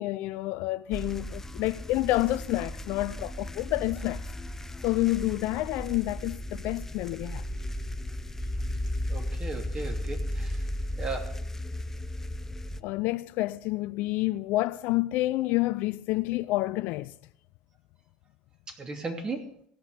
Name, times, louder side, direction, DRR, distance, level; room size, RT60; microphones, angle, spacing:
voice 1, 0.0-4.3 4.8-7.4 12.8-17.1, left 18 dB, 65° left, 0.4 m, -29 dB
sound 1, 0.9-12.8, left 1 dB, 10° left, 0.6 m, -35 dB
voice 2, 9.1-10.6 11.0-11.4 18.7-19.5, right 3 dB, 30° right, 2.9 m, -36 dB
16.0 x 5.9 x 8.3 m
hypercardioid pair, 80°, 3 cm